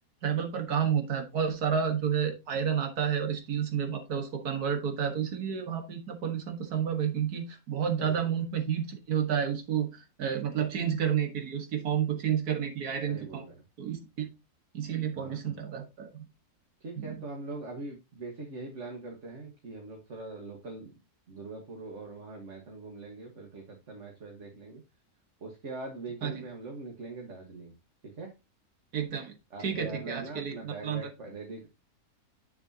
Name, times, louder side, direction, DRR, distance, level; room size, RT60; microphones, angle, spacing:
voice 1, 0.2-9.9 10.2-13.4 13.8-14.3 14.7-16.2 17.0-17.2 26.2-26.4 28.9-29.4 29.6-31.0, right 8 dB, 75° right, 6 dB, 2.0 m, -30 dB
voice 2, 8.0-8.4 13.1-13.6 15.1-15.6 16.8-21.0 21.3-24.8 25.4-27.7 28.0-28.3 29.5-31.7, right 3 dB, 50° right, 1 dB, 1.8 m, -42 dB
8.3 x 6.7 x 2.8 m, 0.25 s
omnidirectional pair, 1.6 m